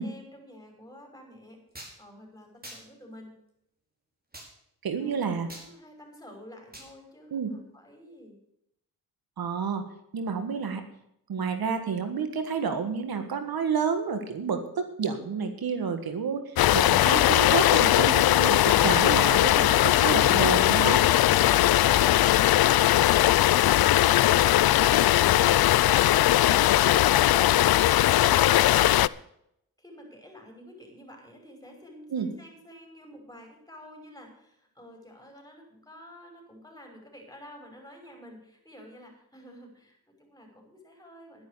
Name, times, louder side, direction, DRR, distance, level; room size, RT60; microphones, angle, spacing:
voice 1, 0.0-1.6 2.0-3.3 4.9-8.4 29.8-41.4, equal, 10° left, 2 dB, 5.9 m, -49 dB
sound 1, 1.7-1.9 2.6-2.8 4.3-4.5 5.5-5.7 6.7-6.9, right 1 dB, 25° right, 5.2 m, -43 dB
voice 2, 4.8-5.5 7.3-7.5 9.4-9.8 10.1-10.8 11.3-21.0 32.1-32.3, right 6 dB, 75° right, 8 dB, 1.7 m, -30 dB
sound 2, 16.6-29.1, left 14 dB, 80° left, 0.5 m, -20 dB
11.5 x 10.5 x 6.7 m, 0.75 s
cardioid pair, 65°, 36 cm